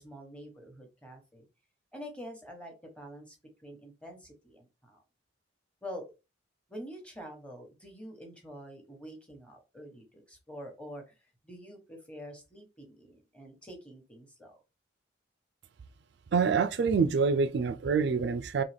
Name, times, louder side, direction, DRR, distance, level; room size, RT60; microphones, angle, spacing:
voice 1, 0.0-1.5 1.9-3.3 3.6-5.0 5.8-6.1 6.7-11.2 11.4-14.6, equal, 5° left, 1.1 m, -46 dB
voice 2, 16.3-18.6, right 5 dB, 60° right, 0.4 m, -26 dB
3.9 x 2.8 x 3.4 m
head